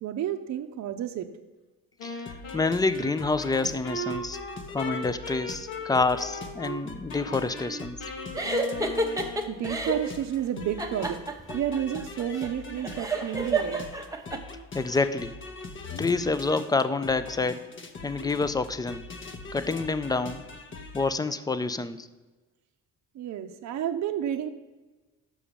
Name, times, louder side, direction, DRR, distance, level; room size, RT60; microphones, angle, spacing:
voice 1, 0.0-1.3 9.5-11.2 11.5-13.9 23.2-24.5, right 10 dB, 55° right, 6 dB, 0.6 m, -31 dB
Wind instrument woodwind instrument, 2.0-6.8 7.1-9.7, left 1 dB, 85° left, 1.9 m, -38 dB
sound 1, 2.3-21.1, left 3 dB, 35° left, 0.8 m, -42 dB
voice 2, 2.5-4.4 4.7-8.0 14.7-15.3 16.0-17.6 18.0-19.0 19.5-20.4 20.9-22.1, left 3 dB, 10° left, 13 dB, 0.4 m, -27 dB
sound 2, 8.3-10.1 10.8-14.4, right 2 dB, 10° right, 0.8 m, -30 dB
6.3 x 5.6 x 6.8 m, 1.2 s
cardioid pair, 95°, 34 cm